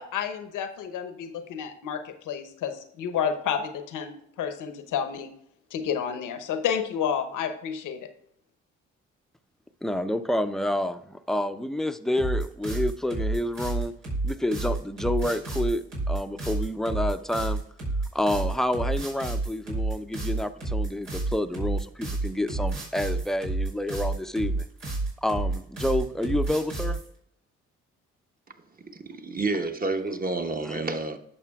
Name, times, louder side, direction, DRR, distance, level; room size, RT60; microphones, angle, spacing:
voice 1, 0.0-5.3 5.7-8.1, left 8 dB, 75° left, 0.9 m, -30 dB
voice 2, 9.8-13.9 14.2-17.6 18.1-24.7 25.2-27.0 30.7-30.8, left 1 dB, ahead, 0.6 m, -29 dB
sound 1, 12.2-27.1, right 2 dB, 85° right, 3.4 m, -29 dB
voice 3, 28.9-31.2, right 3 dB, 30° right, 1.1 m, -29 dB
11.0 x 6.7 x 2.4 m
supercardioid pair, 55°, 32 cm